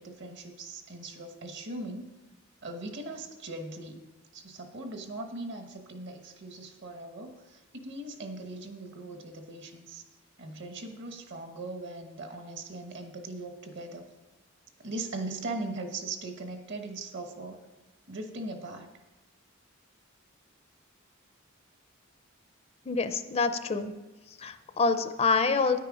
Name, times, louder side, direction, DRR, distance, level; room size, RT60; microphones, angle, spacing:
voice 1, 0.0-2.1 2.6-4.0 4.3-10.1 10.4-14.0 14.8-17.6 18.1-18.9, right 2 dB, 60° right, 5 dB, 1.3 m, -39 dB
voice 2, 22.9-23.9 24.4-25.8, left 4 dB, 30° left, 9 dB, 0.5 m, -26 dB
10.0 x 9.2 x 4.9 m, 1.1 s
head